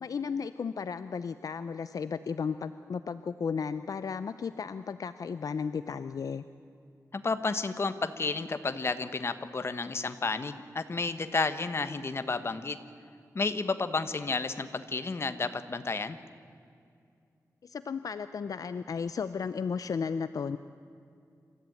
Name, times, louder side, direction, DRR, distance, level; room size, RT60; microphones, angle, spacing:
voice 1, 0.0-6.4 17.6-20.6, left 6 dB, 70° left, 12 dB, 0.6 m, -34 dB
voice 2, 7.1-12.8 13.3-16.2, left 4 dB, 40° left, 10 dB, 1.2 m, -31 dB
26.5 x 14.0 x 9.3 m, 2.4 s
wide cardioid pair, 115°, 6 cm